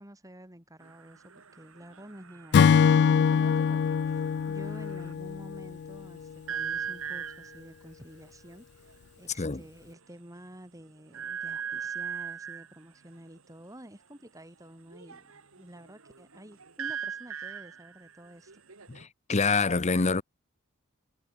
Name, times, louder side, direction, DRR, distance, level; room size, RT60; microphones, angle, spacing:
voice 1, 0.0-18.5, right 1 dB, 15° right, 7.0 m, -50 dB
sound 1, 0.8-5.2 6.5-7.7 8.9-9.0 9.3-9.5 9.9-10.0 11.1-12.8 14.9-19.0, right 7 dB, 65° right, 1.8 m, -39 dB
Acoustic guitar / Strum, 2.5-6.0, left 6 dB, 50° left, 0.3 m, -23 dB
voice 2, 18.9-20.2, left 4 dB, 30° left, 0.8 m, -26 dB
head